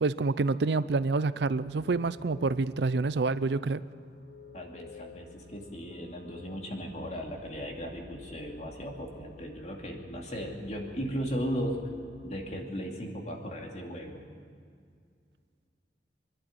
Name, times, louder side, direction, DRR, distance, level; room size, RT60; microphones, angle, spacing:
voice 1, 0.0-3.8, right 3 dB, 70° right, 16 dB, 0.5 m, -27 dB
sound 1, 1.6-12.6, left 2 dB, 70° left, 2.3 m, -51 dB
voice 2, 4.5-11.8 12.2-14.2, equal, 40° left, 1 dB, 2.7 m, -36 dB
25.5 x 11.5 x 9.2 m, 2.2 s
head